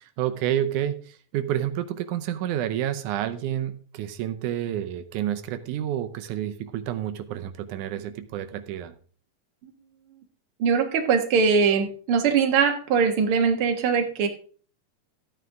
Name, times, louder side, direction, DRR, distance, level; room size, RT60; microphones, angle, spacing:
voice 1, 0.0-8.9, right 11 dB, 85° right, 9 dB, 2.3 m, -29 dB
voice 2, 10.6-14.3, right 6 dB, 50° right, 4 dB, 2.2 m, -21 dB
14.0 x 9.4 x 3.6 m, 0.43 s
omnidirectional pair, 3.5 m